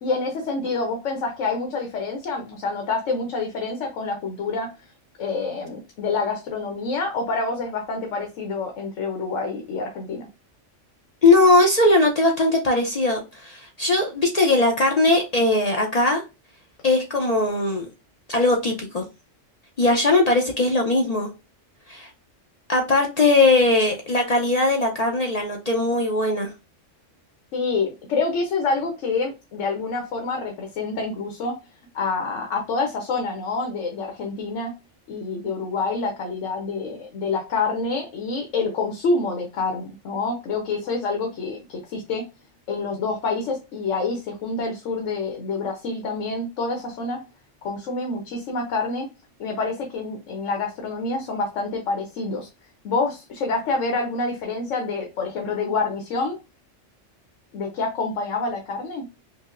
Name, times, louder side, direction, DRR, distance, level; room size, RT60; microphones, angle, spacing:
voice 1, 0.0-4.7 5.2-10.3 27.5-31.6 31.9-34.7 35.1-42.3 42.7-47.2 47.6-49.1 49.4-52.5 52.8-56.4 57.5-59.1, left 3 dB, 85° left, 1.1 m, -27 dB
voice 2, 11.2-16.2 16.8-17.9 18.3-19.1 19.8-21.3 21.9-22.1 22.7-26.5, left 2 dB, 50° left, 0.5 m, -19 dB
5.2 x 2.0 x 2.4 m
omnidirectional pair, 1.3 m